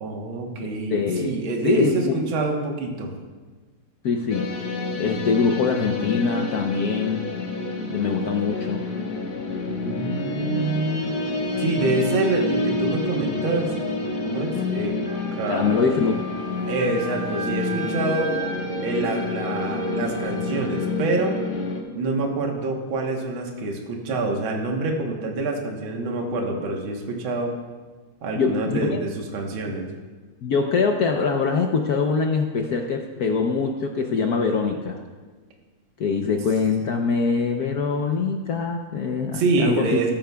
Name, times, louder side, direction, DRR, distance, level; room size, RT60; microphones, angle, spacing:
voice 1, 0.0-3.2 9.7-11.2 11.6-13.7 14.2-15.0 15.4-15.7 16.7-18.3 18.8-21.4 21.9-27.5 28.2-29.9 39.3-40.1, right 3 dB, 70° right, 1 dB, 2.0 m, -26 dB
voice 2, 0.6-1.4 1.6-2.2 4.0-4.4 5.0-7.3 7.8-8.9 15.5-16.3 28.3-29.0 29.7-29.8 30.4-35.0 36.0-39.9, left 5 dB, 70° left, 3 dB, 0.9 m, -23 dB
sound 1, 4.3-21.8, left 3 dB, 35° left, 0.8 m, -28 dB
Wind instrument woodwind instrument, 15.0-20.9, right 2 dB, 30° right, 3.5 m, -36 dB
14.0 x 13.5 x 2.3 m, 1.4 s
omnidirectional pair, 2.4 m